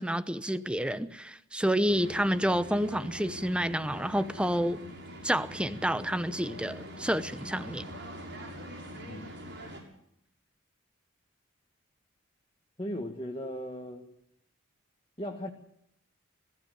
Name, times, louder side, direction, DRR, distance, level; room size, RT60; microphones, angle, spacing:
voice 1, 0.0-4.8 5.2-7.9, equal, 5° right, 0.8 m, -29 dB
sound 1, 1.9-9.8, equal, 60° right, 6.5 m, -44 dB
voice 2, 9.1-9.7 12.8-14.0 15.2-15.5, equal, 25° left, 1.9 m, -38 dB
21.0 x 15.5 x 9.1 m
head